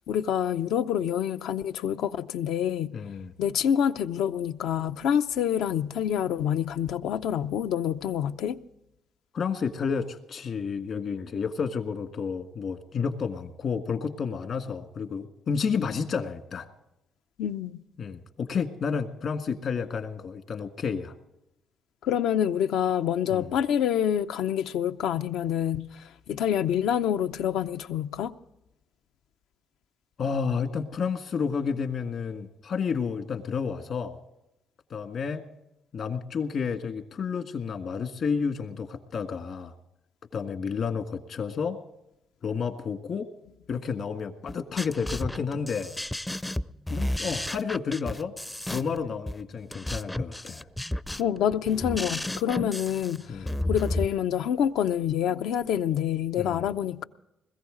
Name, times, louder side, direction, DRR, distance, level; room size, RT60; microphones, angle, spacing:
voice 1, 0.1-2.9 3.4-8.6 17.4-17.8 22.0-28.3 51.2-57.0, left 9 dB, 85° left, 0.6 m, -27 dB
voice 2, 2.9-3.3 9.3-16.7 18.0-21.1 23.3-23.5 30.2-34.2 34.9-35.4 35.9-39.7 40.3-41.8 42.4-43.3 43.7-45.9 46.9-48.3 48.7-50.7 53.3-53.6 56.4-56.6, left 6 dB, 60° left, 1.6 m, -31 dB
sound 1, 44.5-54.1, left 1 dB, 10° left, 0.4 m, -32 dB
21.0 x 14.5 x 3.8 m
cardioid pair, 90°, 0 cm